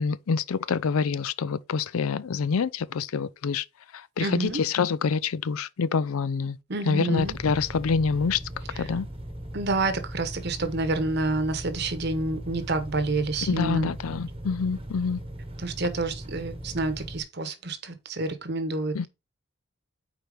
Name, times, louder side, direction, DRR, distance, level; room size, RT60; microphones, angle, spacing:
voice 1, 0.0-3.6 3.9-6.6 6.8-8.4 8.8-9.1 13.5-15.2 18.9-19.1, left 5 dB, 85° left, 0.4 m, -26 dB
voice 2, 4.2-4.6 6.7-7.4 9.5-13.9 15.6-19.1, right 2 dB, 50° right, 1.0 m, -28 dB
sound 1, 7.2-17.2, right 1 dB, 25° right, 1.0 m, -39 dB
4.9 x 4.5 x 5.0 m
head